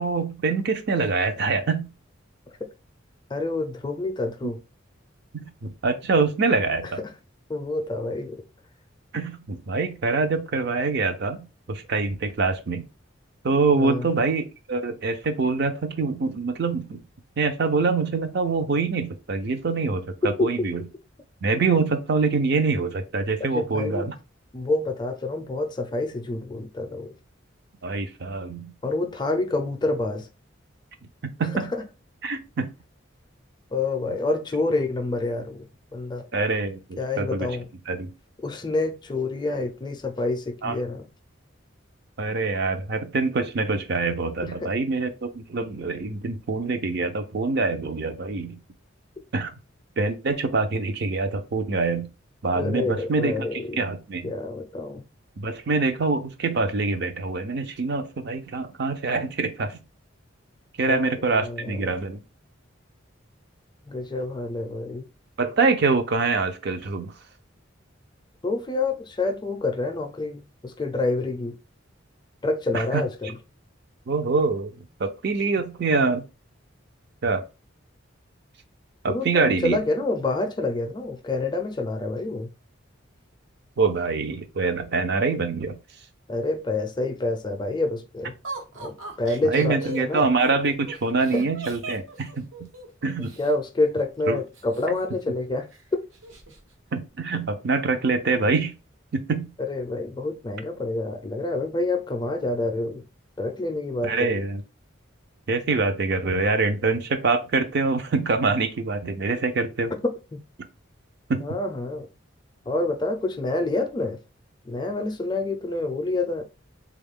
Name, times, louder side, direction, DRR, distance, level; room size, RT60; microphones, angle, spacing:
voice 1, 0.0-1.9 5.3-7.0 9.1-12.8 13.4-17.0 17.4-20.1 20.4-20.8 21.4-24.1 27.8-28.7 31.4-31.7 32.2-32.7 36.3-37.5 37.9-38.1 40.6-40.7 42.2-48.6 49.3-49.5 50.0-52.1 52.4-53.5 53.8-54.3 55.4-59.8 60.8-62.2 65.4-67.1 72.7-73.0 74.1-74.7 75.0-76.2 77.2-77.4 79.0-79.8 83.8-85.8 89.5-92.5 93.0-93.3 94.3-94.4 96.9-98.7 99.1-99.5 104.0-104.6 105.5-109.9 111.3-111.4, right 4 dB, 55° right, 0.5 m, -25 dB
voice 2, 3.3-4.6 7.5-8.4 9.2-9.3 13.8-14.1 20.4-20.5 23.5-24.1 24.5-27.1 28.8-30.3 31.4-31.8 33.7-36.3 37.0-37.7 38.4-41.1 44.4-44.7 52.6-53.8 54.2-55.0 60.9-61.1 61.4-61.9 63.9-65.1 68.4-71.6 72.4-73.4 79.1-82.5 86.3-88.3 88.8-90.3 91.3-91.4 93.2-96.0 99.6-103.1 103.4-104.4 110.3-110.4 111.4-112.1 112.7-114.2 114.7-116.5, left 2 dB, 20° left, 0.4 m, -28 dB
Laughter, 88.4-93.5 94.5-95.4 95.7-95.8 96.1-96.6, right 2 dB, 90° right, 0.9 m, -39 dB
3.5 x 2.3 x 3.5 m
head